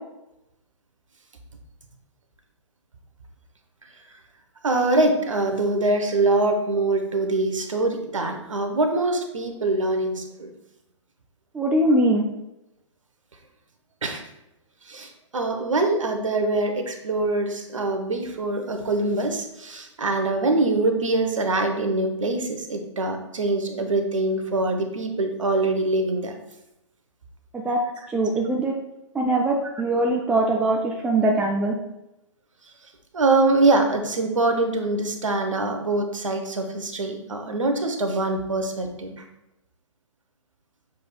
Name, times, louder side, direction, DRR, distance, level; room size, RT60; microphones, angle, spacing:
voice 1, 4.6-10.5 14.0-14.2 14.9-26.4 33.1-39.2, right 2 dB, 80° right, 5 dB, 0.8 m, -24 dB
voice 2, 11.5-12.2 27.5-27.8 28.1-28.7 29.1-31.7, right 2 dB, 5° right, -1 dB, 0.3 m, -22 dB
6.7 x 3.3 x 2.2 m, 0.90 s
figure-of-eight pair, 125°, 16 cm